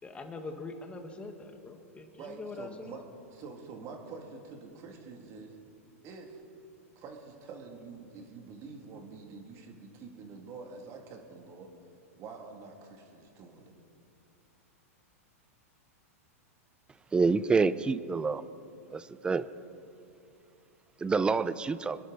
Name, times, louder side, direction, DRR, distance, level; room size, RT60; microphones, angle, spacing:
voice 1, 0.0-2.9, left 3 dB, 15° left, 5 dB, 1.7 m, -43 dB
voice 2, 2.1-3.0 3.3-5.6 6.0-6.4 7.0-11.7 12.1-13.7, right 4 dB, 40° right, 2 dB, 2.6 m, -46 dB
voice 3, 17.1-18.4 18.9-19.5 21.0-22.0, right 4 dB, 10° right, 15 dB, 0.5 m, -27 dB
26.0 x 11.5 x 4.1 m, 2.7 s
hypercardioid pair, 125°, 8 cm